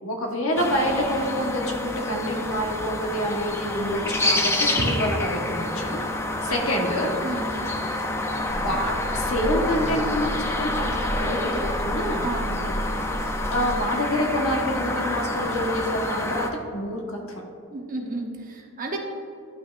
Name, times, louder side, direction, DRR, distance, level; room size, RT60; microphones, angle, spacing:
voice 1, 0.0-6.0 6.4-7.5 8.5-12.3 12.7-12.8 13.3-17.2, equal, 80° left, 1 dB, 1.2 m, -27 dB
sound 1, 0.6-16.5, left 2 dB, 10° left, 0.5 m, -28 dB
sound 2, 8.5-13.8, right 1 dB, 80° right, 1.0 m, -33 dB
voice 2, 12.2-12.5 17.7-19.0, right 2 dB, 40° right, 1 dB, 0.9 m, -32 dB
11.0 x 5.9 x 2.5 m, 2.5 s
head